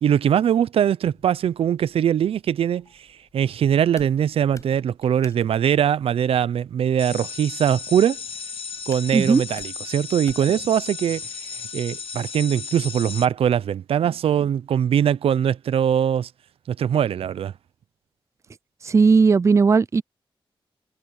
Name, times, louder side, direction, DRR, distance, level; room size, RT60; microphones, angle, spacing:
voice 1, 0.0-3.1 3.3-8.2 8.9-11.2 11.7-16.3 16.7-17.5, right 9 dB, 85° right, 0.5 m, -21 dB
sound 1, 1.0-13.8, left 3 dB, 35° left, 5.5 m, -53 dB
sound 2, 7.0-13.3, left 5 dB, 75° left, 1.4 m, -35 dB
voice 2, 9.1-9.4 18.8-20.0, right 4 dB, 30° right, 0.4 m, -16 dB
cardioid pair, 75°, 10 cm